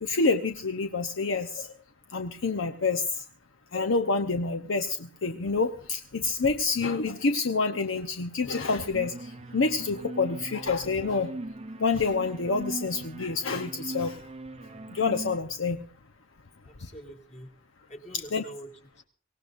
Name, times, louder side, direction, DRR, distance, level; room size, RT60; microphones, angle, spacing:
voice 1, 0.0-1.7 2.1-3.0 3.7-9.1 9.5-11.3 11.8-14.2 14.9-15.8 18.3-18.4, left 4 dB, 80° left, 7 dB, 0.9 m, -27 dB
sound 1, 8.9-15.4, right 2 dB, 30° right, 0.6 m, -40 dB
voice 2, 16.6-17.5 17.9-19.0, equal, 35° left, 1 dB, 2.4 m, -46 dB
24.0 x 18.0 x 2.6 m, 0.40 s
head